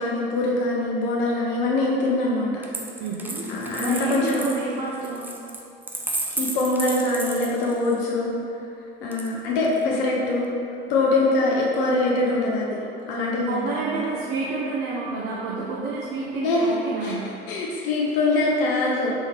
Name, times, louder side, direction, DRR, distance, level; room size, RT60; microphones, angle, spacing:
voice 1, 0.0-2.5 3.5-4.5 6.4-8.3 9.0-10.5 10.9-12.7 13.1-14.0 16.4-16.7 17.0-17.2 17.5-19.1, left 2 dB, 65° left, -3 dB, 0.7 m, -23 dB
Coin (dropping), 2.6-8.0 9.1-9.8, right 2 dB, 5° right, 0.3 m, -33 dB
voice 2, 3.0-3.5 3.8-5.3 13.5-17.4, right 3 dB, 55° right, -4 dB, 0.6 m, -29 dB
4.2 x 3.5 x 3.1 m, 2.7 s
figure-of-eight pair, 70°, 30 cm